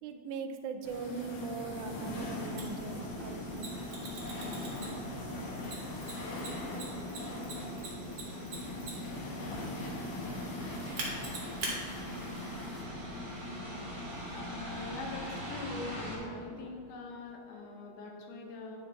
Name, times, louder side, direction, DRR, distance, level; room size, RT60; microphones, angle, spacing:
voice 1, 0.0-3.7, right 4 dB, 85° right, 7 dB, 2.0 m, -40 dB
sound 1, 0.8-12.8, left 1 dB, 65° left, 1.8 m, -42 dB
sound 2, 2.0-16.2, equal, 35° right, 0.8 m, -42 dB
Mechanisms, 2.6-2.7 3.6-5.1 5.6-9.2 11.0-11.7, right 3 dB, 50° right, 1.1 m, -40 dB
voice 2, 14.4-18.8, left 3 dB, 90° left, 1 dB, 2.4 m, -43 dB
9.8 x 4.6 x 3.4 m, 2.5 s
omnidirectional pair, 3.5 m